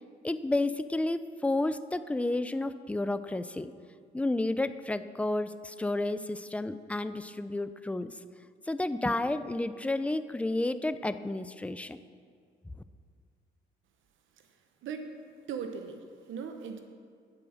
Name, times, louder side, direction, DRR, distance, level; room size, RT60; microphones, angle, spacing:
voice 1, 0.2-3.7 4.1-8.1 8.7-12.0, left 2 dB, 5° left, 12 dB, 0.4 m, -31 dB
voice 2, 14.8-15.1 15.5-16.8, right 6 dB, 80° right, 6 dB, 0.9 m, -39 dB
8.7 x 7.7 x 6.2 m, 2.1 s
cardioid pair, 90°, 20 cm